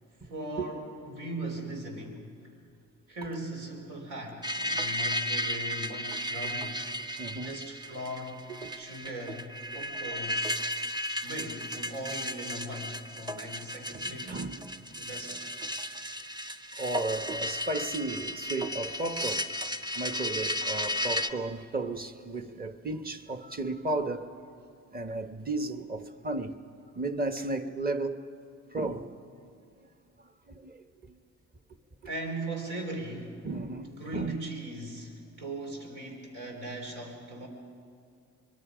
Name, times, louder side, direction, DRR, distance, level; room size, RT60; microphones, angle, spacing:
voice 1, 0.2-2.4 3.1-6.8 7.3-8.5 8.7-10.5 11.2-14.5 15.0-15.5 32.0-33.4 33.9-37.5, right 1 dB, 90° right, 3.9 m, -39 dB
sound 1, 4.4-21.3, equal, 15° right, 0.8 m, -34 dB
voice 2, 7.2-7.5 8.5-8.7 10.7-10.8 13.9-15.1 16.8-19.4 20.0-24.3 24.9-26.6 26.9-28.2 28.7-29.1 30.2-31.2 33.4-34.4, right 2 dB, 30° right, 1.3 m, -34 dB
24.5 x 22.0 x 5.1 m
cardioid pair, 90°, 30 cm